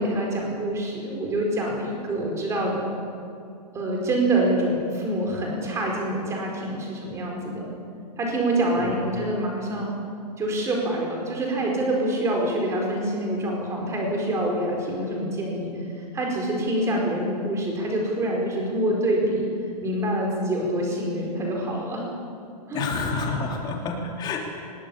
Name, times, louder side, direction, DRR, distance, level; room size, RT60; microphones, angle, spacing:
voice 1, 0.0-2.9 3.7-7.7 8.2-9.9 10.4-15.7 16.0-19.4 19.8-22.1 22.7-22.9, right 1 dB, 15° right, 0 dB, 4.6 m, -26 dB
voice 2, 22.7-24.4, left 4 dB, 20° left, 1 dB, 3.2 m, -28 dB
21.5 x 19.0 x 8.6 m, 2.4 s
hypercardioid pair, 165°, 21 cm